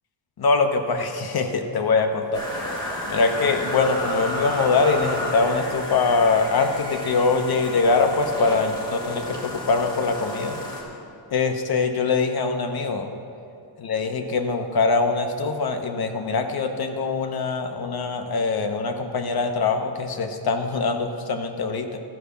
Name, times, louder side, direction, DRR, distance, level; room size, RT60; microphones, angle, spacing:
voice 1, 0.4-2.8 3.1-10.6 11.3-13.1 13.8-22.0, left 4 dB, 50° left, 6 dB, 1.0 m, -23 dB
sound 1, 2.3-10.8, left 1 dB, 10° left, 2.1 m, -32 dB
13.5 x 5.0 x 6.9 m, 2.5 s
wide cardioid pair, 130°, 46 cm